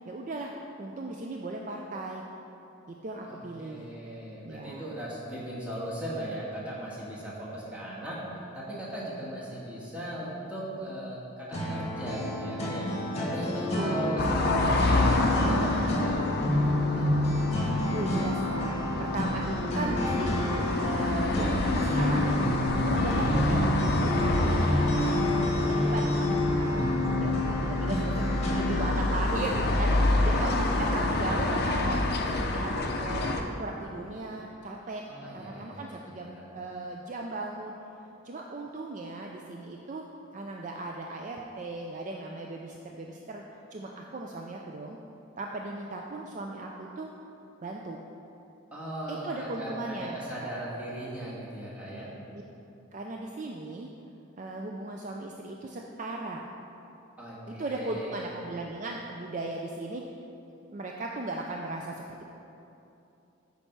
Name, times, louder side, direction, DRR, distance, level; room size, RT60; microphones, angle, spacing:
voice 1, 0.1-0.5 0.8-2.3 2.9-3.9 4.4-4.9 13.7-14.2 17.9-20.3 20.8-22.4 22.8-25.2 25.6-32.0 32.3-35.0 35.3-37.7 38.2-40.0 40.3-43.4 43.7-45.0 45.4-47.1 47.6-48.0 49.1-50.5 52.9-53.9 54.4-56.4 57.5-60.0 60.7-62.3, right 2 dB, 35° right, 0 dB, 0.4 m, -37 dB
voice 2, 3.3-8.2 8.5-12.9 13.2-17.1 30.2-30.4 35.1-36.4 48.7-52.1 57.2-58.2, right 1 dB, 5° right, -8 dB, 1.5 m, -38 dB
sound 1, 11.5-29.0, left 1 dB, 30° left, 1.3 m, -28 dB
sound 2, 14.2-33.4, left 2 dB, 45° left, 0.5 m, -28 dB
8.7 x 5.5 x 4.6 m, 2.9 s
head